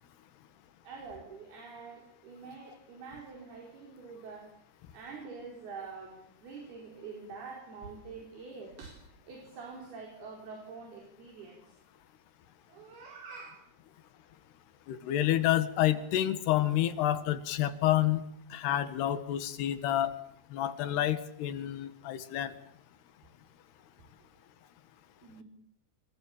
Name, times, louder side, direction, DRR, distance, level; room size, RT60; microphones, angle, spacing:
voice 1, 0.8-4.5 4.9-11.8 12.7-13.6 25.2-25.4, right 4 dB, 70° right, 1 dB, 6.3 m, -46 dB
voice 2, 14.9-18.2 18.5-20.1 20.5-22.5, left 12 dB, 85° left, 12 dB, 3.7 m, -29 dB
27.5 x 27.5 x 7.4 m, 0.69 s
omnidirectional pair, 4.6 m